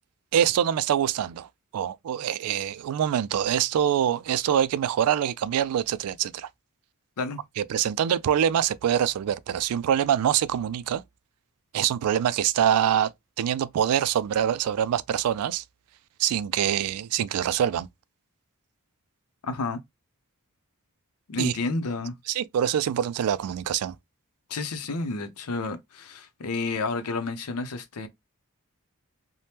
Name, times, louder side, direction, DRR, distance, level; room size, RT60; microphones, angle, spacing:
voice 1, 0.3-1.5 1.7-6.5 7.6-11.0 11.7-13.1 13.4-15.6 16.2-17.9 21.4-21.5 22.3-24.0, right 9 dB, 80° right, 0.3 m, -25 dB
voice 2, 19.4-19.8 21.3-22.1 24.5-28.1, left 3 dB, 85° left, 0.6 m, -30 dB
3.3 x 2.1 x 2.7 m
head